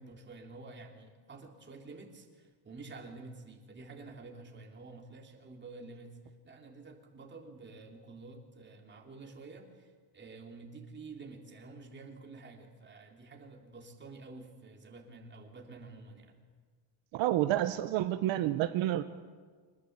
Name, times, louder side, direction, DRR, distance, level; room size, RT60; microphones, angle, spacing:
voice 1, 0.0-16.4, right 3 dB, 25° right, 2 dB, 3.5 m, -49 dB
voice 2, 17.1-19.0, right 14 dB, 75° right, 9 dB, 1.3 m, -29 dB
25.5 x 20.5 x 8.2 m, 1.5 s
cardioid pair, 150°, 46 cm